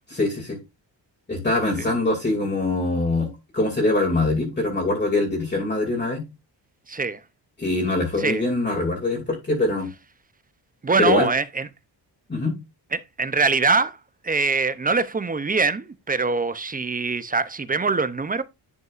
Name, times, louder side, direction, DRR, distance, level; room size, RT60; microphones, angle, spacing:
voice 1, 0.1-0.6 1.3-6.2 7.6-9.9 11.0-11.3 12.3-12.5, left 2 dB, 25° left, 2.5 m, -23 dB
voice 2, 6.9-7.2 8.2-8.4 10.8-11.7 12.9-14.0 14.2-18.4, right 4 dB, 20° right, 0.6 m, -23 dB
11.0 x 5.2 x 2.5 m
cardioid pair, 125°, 44 cm